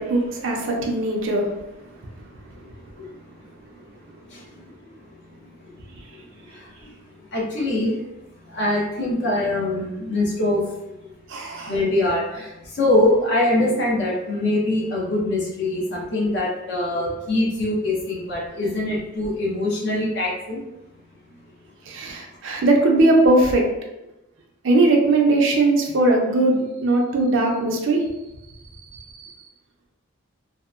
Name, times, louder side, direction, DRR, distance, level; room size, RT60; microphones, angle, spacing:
voice 1, 0.0-1.5 5.9-6.0 11.3-11.7 21.9-23.7 24.6-28.0 28.9-29.3, right 2 dB, 60° right, 1 dB, 0.4 m, -19 dB
voice 2, 7.3-8.0 8.5-10.6 11.7-20.6, left 1 dB, 55° left, -4 dB, 0.7 m, -23 dB
2.7 x 2.0 x 2.4 m, 0.95 s
head